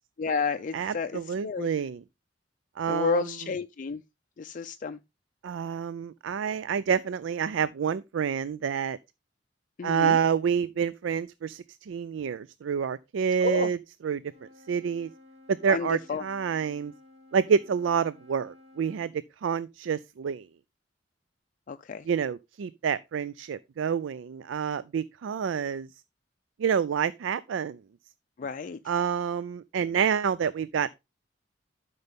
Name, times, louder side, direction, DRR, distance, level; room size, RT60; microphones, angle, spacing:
voice 1, 0.2-1.7 2.9-4.0 4.4-5.0 9.8-10.2 13.4-13.7 15.7-16.2 21.7-22.1 28.4-28.8, left 5 dB, 45° left, 0.4 m, -31 dB
voice 2, 0.7-2.0 2.8-3.3 5.4-9.0 9.8-13.8 14.0-14.2 14.7-15.1 15.6-16.9 17.3-19.1 19.4-20.5 22.1-25.9 26.6-27.8 28.9-31.0, right 7 dB, 85° right, 0.4 m, -28 dB
Wind instrument woodwind instrument, 14.2-19.2, left 2 dB, 35° right, 1.8 m, -55 dB
12.0 x 5.4 x 3.5 m
head